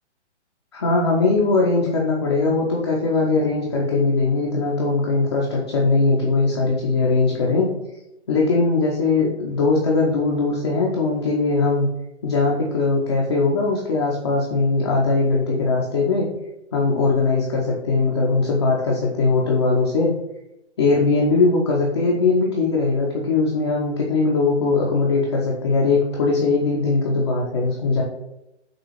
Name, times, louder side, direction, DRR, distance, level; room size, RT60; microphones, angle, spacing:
voice 1, 0.7-7.7 8.3-11.9 12.2-16.3 16.7-20.1 20.8-28.0, left 3 dB, 25° left, -3 dB, 0.4 m, -20 dB
6.1 x 2.4 x 3.1 m, 0.89 s
hypercardioid pair, 140°, 35 cm